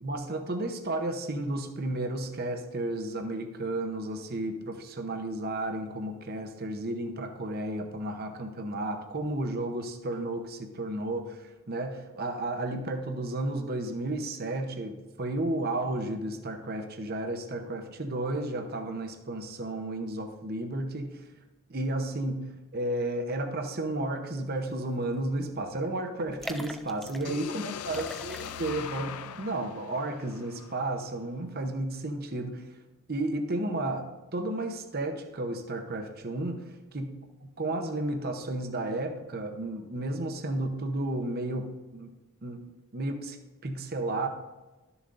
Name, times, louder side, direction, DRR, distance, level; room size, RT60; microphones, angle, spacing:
voice 1, 0.0-21.2 21.7-22.5 22.7-32.6 33.1-36.6 36.9-37.2 37.4-42.1 42.4-42.6 42.9-43.4 43.6-44.3, right 2 dB, 45° right, 5 dB, 0.8 m, -33 dB
sound 1, 24.9-25.2 25.4-25.5 26.2-27.4 27.8-28.9 29.3-29.4, equal, ahead, 0.3 m, -41 dB
sound 2, 27.2-31.2, left 8 dB, 90° left, 0.4 m, -41 dB
12.5 x 6.9 x 2.6 m, 1.1 s
head